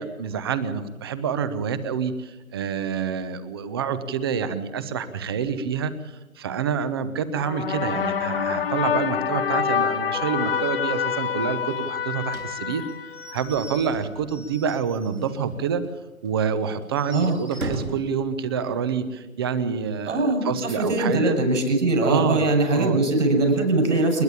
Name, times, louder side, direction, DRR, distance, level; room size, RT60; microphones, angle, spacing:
voice 1, 0.0-12.8 13.3-15.8 16.2-21.4 22.0-23.1, right 7 dB, 20° right, 14 dB, 0.9 m, -27 dB
sound 1, 7.3-13.7, left 8 dB, 40° left, 1.0 m, -27 dB
Slam / Squeak / Wood, 12.3-15.5 15.8-15.9 16.2-16.3 16.8-18.2, right 2 dB, 85° right, 3.7 m, -37 dB
voice 2, 20.1-24.2, right 2 dB, 60° right, 3 dB, 7.7 m, -21 dB
29.0 x 10.5 x 8.7 m, 1.1 s
figure-of-eight pair, 145°, 42 cm